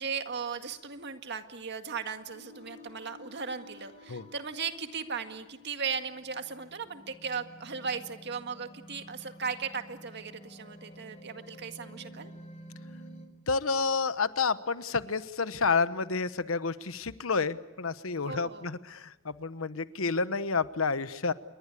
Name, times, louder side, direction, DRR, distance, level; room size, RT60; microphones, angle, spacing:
voice 1, 0.0-12.3 18.2-18.7, right 5 dB, 55° right, 7 dB, 2.0 m, -37 dB
sound 1, 2.3-13.3, equal, 35° left, 4.5 m, -51 dB
voice 2, 13.5-21.3, left 4 dB, 85° left, 13 dB, 1.1 m, -30 dB
28.0 x 23.5 x 8.4 m, 0.99 s
head